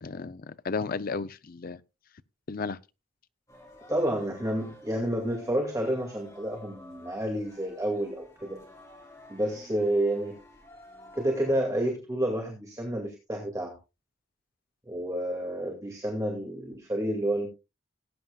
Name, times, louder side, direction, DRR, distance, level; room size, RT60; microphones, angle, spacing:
voice 1, 0.0-1.8 2.5-2.8, left 4 dB, 45° left, 0.5 m, -33 dB
sound 1, 3.5-11.6, left 1 dB, 15° left, 3.1 m, -51 dB
voice 2, 3.9-8.5 9.3-10.3 11.1-13.8 14.9-17.5, right 1 dB, 15° right, 2.2 m, -29 dB
19.0 x 9.3 x 2.3 m
head